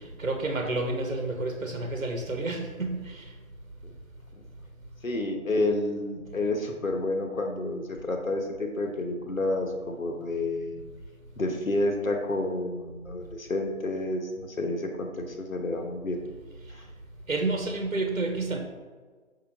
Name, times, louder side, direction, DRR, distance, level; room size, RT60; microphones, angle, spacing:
voice 1, 0.0-3.2 17.3-18.6, right 2 dB, 70° right, 3 dB, 1.2 m, -30 dB
voice 2, 5.0-10.8 11.4-16.2 16.7-16.8, left 2 dB, 70° left, 3 dB, 1.2 m, -30 dB
5.9 x 5.7 x 3.6 m, 1.4 s
figure-of-eight pair, 170°, 42 cm